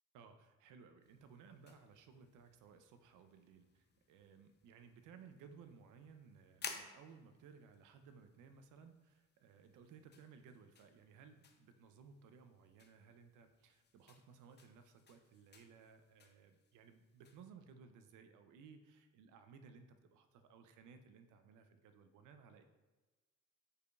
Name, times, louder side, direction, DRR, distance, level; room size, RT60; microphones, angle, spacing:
voice 1, 0.1-22.6, right 6 dB, 85° right, 8 dB, 0.5 m, -60 dB
sound 1, 1.0-17.5, left 5 dB, 35° left, 0.5 m, -58 dB
4.8 x 4.6 x 2.3 m, 1.2 s
cardioid pair, 90°, 30 cm